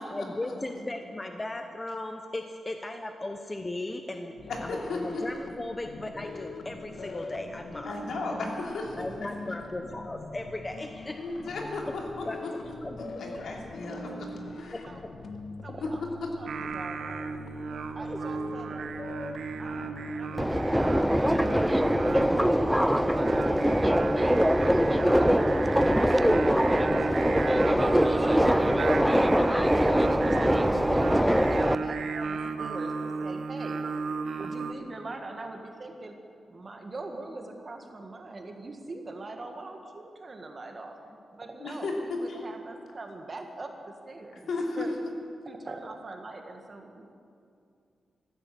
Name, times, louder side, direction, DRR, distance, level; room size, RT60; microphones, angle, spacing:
voice 1, 0.0-4.4 4.6-7.9 8.9-11.2 12.3-12.4 12.8-13.0 13.3-13.5 14.7-14.8 18.0-18.2, left 2 dB, 20° left, 5 dB, 0.8 m, -37 dB
sound 1, 4.4-23.2, left 2 dB, 65° left, 1.4 m, -43 dB
voice 2, 4.5-5.2 7.8-9.1 11.2-14.3 14.6-14.8 41.6-42.4 44.5-44.9, left 3 dB, 80° left, -1 dB, 3.1 m, -35 dB
voice 3, 15.6-17.4 18.0-19.0 19.6-27.2 27.9-33.9 34.4-36.2 36.5-41.0 41.3-45.0 45.4-47.1, right 2 dB, 35° right, 4 dB, 1.8 m, -42 dB
Singing, 16.5-34.7, right 4 dB, 75° right, 0.9 m, -34 dB
Subway metro underground, 20.4-31.8, equal, ahead, 0.4 m, -23 dB
15.5 x 12.0 x 7.6 m, 2.4 s
wide cardioid pair, 115°, 0 cm